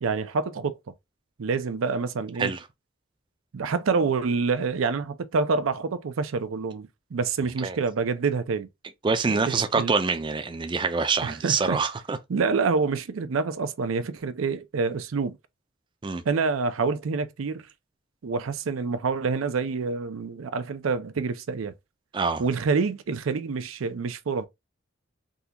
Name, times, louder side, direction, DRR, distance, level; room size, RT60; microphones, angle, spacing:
voice 1, 0.0-0.7 1.4-2.5 3.5-8.7 9.2-9.9 11.2-11.8 12.3-15.4 16.2-17.7 18.2-21.7 22.4-24.5, right 4 dB, 90° right, 0.5 m, -27 dB
voice 2, 9.0-12.2 16.0-16.2 22.1-22.4, right 4 dB, 25° right, 0.4 m, -25 dB
3.7 x 2.3 x 2.8 m
head